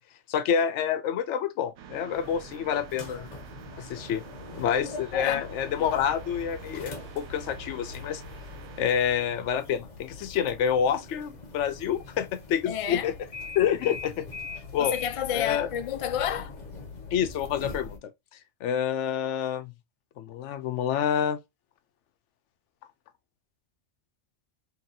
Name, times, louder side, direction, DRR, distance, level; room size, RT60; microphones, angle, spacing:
voice 1, 0.3-3.3 3.8-4.2 4.6-8.2 8.8-13.1 13.6-14.3 14.7-15.0 15.3-15.7 17.1-18.1 18.6-19.7 20.2-21.4, left 8 dB, 80° left, 0.9 m, -28 dB
sound 1, 1.8-9.5, right 8 dB, 85° right, 1.0 m, -47 dB
sound 2, 2.1-18.0, left 4 dB, 40° left, 0.8 m, -43 dB
voice 2, 4.8-5.4 12.7-13.1 14.8-16.5, left 9 dB, 65° left, 0.3 m, -30 dB
2.9 x 2.9 x 3.8 m
omnidirectional pair, 1.2 m